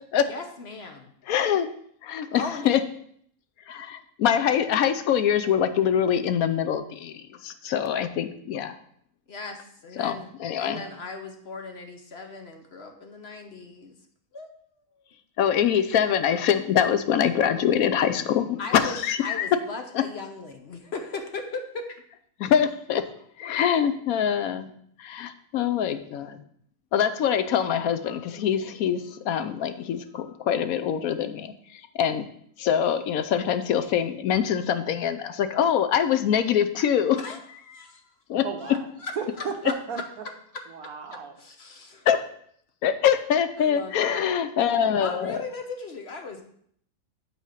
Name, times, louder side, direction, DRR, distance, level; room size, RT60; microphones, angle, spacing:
voice 1, 0.3-1.1 2.3-2.7 9.3-10.3 10.6-14.0 14.3-14.5 18.6-21.9 37.2-37.4 37.6-38.0 38.6-39.1 41.1-42.1 43.6-44.3 45.0-46.4, left 3 dB, 50° left, 5 dB, 0.9 m, -38 dB
voice 2, 1.3-1.7 2.0-2.8 3.7-8.7 10.0-10.8 15.4-19.6 19.9-20.0 22.4-23.1 23.4-24.7 25.0-26.4 26.9-32.3 32.6-37.2 38.3-38.5 42.1-42.2 42.8-45.4, left 9 dB, 75° left, 10 dB, 1.0 m, -24 dB
voice 3, 38.4-38.8 39.2-40.0 40.7-41.3, right 5 dB, 70° right, 4 dB, 1.5 m, -34 dB
8.1 x 4.3 x 6.4 m, 0.66 s
omnidirectional pair, 1.6 m